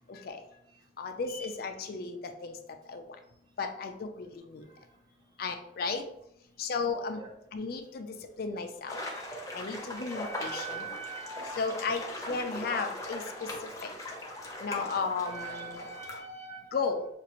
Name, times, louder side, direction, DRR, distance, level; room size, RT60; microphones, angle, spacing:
voice 1, 0.1-0.4 1.0-2.6 2.9-3.0 3.6-4.6 5.4-6.0 6.6-7.2 7.5-9.0 9.5-10.9 11.6-13.9 14.6-15.8 16.7-17.1, left 4 dB, 55° left, 6 dB, 0.4 m, -34 dB
sound 1, 8.9-16.2, left 1 dB, 20° left, 0.7 m, -40 dB
voice 2, 8.9-9.2 9.7-11.6 13.8-14.7 15.2-16.8, right 4 dB, 25° right, -1 dB, 0.9 m, -44 dB
5.9 x 2.5 x 2.9 m, 0.77 s
head